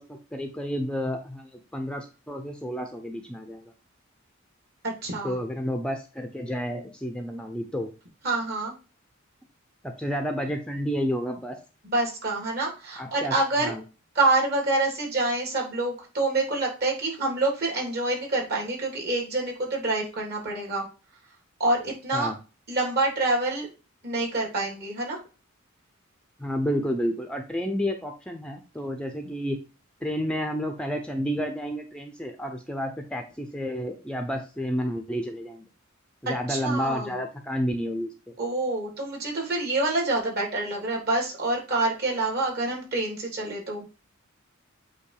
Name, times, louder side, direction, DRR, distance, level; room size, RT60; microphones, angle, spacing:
voice 1, 0.0-3.6 5.2-7.9 9.8-11.6 13.0-13.4 13.6-13.8 22.1-22.4 26.4-29.6 30.0-35.7 36.2-38.3, equal, 5° left, 4 dB, 0.7 m, -30 dB
voice 2, 4.8-5.4 8.2-8.7 11.8-13.7 14.1-20.8 21.6-22.3 22.7-23.7 24.0-25.2 36.2-37.1 38.4-43.9, right 2 dB, 50° right, -1 dB, 3.2 m, -27 dB
8.5 x 3.1 x 4.8 m, 0.33 s
head